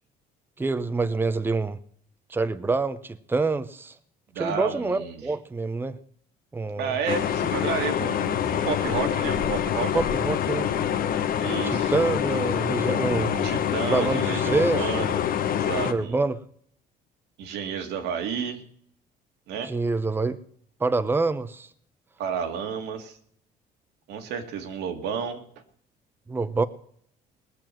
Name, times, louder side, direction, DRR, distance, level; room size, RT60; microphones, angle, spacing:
voice 1, 0.6-1.8 2.3-4.0 4.4-6.0 6.5-7.0 9.9-10.7 11.6-13.6 13.9-14.8 15.8-16.4 19.6-20.4 20.8-21.7 26.3-26.7, right 3 dB, 10° right, 0.7 m, -26 dB
voice 2, 4.3-5.3 6.8-9.9 11.4-11.9 13.4-15.2 15.5-16.2 17.4-18.6 19.5-19.7 22.2-23.2 24.1-25.4, right 6 dB, 85° right, 2.1 m, -31 dB
sound 1, 7.1-15.9, left 9 dB, 60° left, 1.2 m, -26 dB
19.5 x 7.0 x 7.6 m
cardioid pair, 110°, 17 cm